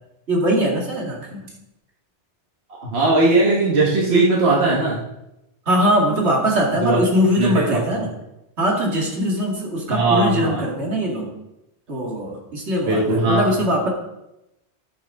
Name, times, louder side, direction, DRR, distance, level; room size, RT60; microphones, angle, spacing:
voice 1, 0.3-1.5 5.7-8.1 8.6-11.3 11.9-13.9, equal, 85° right, -1 dB, 2.3 m, -21 dB
voice 2, 2.8-5.0 6.8-7.0 7.4-8.1 9.9-10.7 12.8-13.5, right 2 dB, 70° right, -4 dB, 1.7 m, -19 dB
13.0 x 6.4 x 3.7 m, 0.89 s
omnidirectional pair, 1.1 m